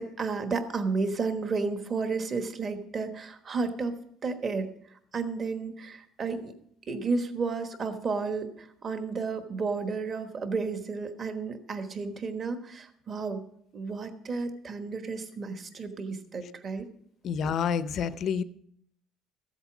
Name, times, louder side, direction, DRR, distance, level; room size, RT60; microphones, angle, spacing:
voice 1, 0.0-4.0 4.2-6.5 6.9-13.4 13.7-16.9, right 4 dB, 30° right, 8 dB, 1.2 m, -32 dB
voice 2, 17.2-18.4, left 7 dB, 40° left, 14 dB, 0.6 m, -28 dB
14.0 x 8.1 x 6.0 m, 0.67 s
cardioid pair, 160°, 0 cm